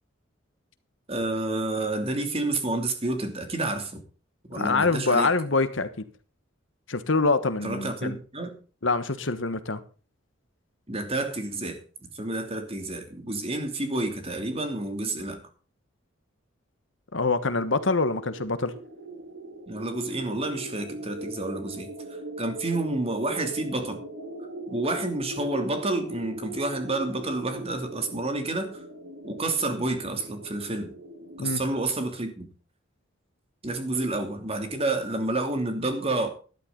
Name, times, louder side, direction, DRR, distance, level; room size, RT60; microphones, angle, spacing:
voice 1, 1.1-4.0 4.5-5.3 7.6-8.6 10.9-11.8 12.1-15.4 19.7-24.0 24.7-28.8 29.2-30.9 31.4-32.5 33.6-36.3, right 2 dB, 30° right, 2.8 m, -29 dB
voice 2, 4.6-5.9 6.9-8.2 8.8-9.8 17.1-18.7 31.4-31.6, left 3 dB, 70° left, 1.3 m, -25 dB
sound 1, 17.4-31.5, right 2 dB, 75° right, 3.3 m, -40 dB
13.0 x 12.5 x 4.0 m
head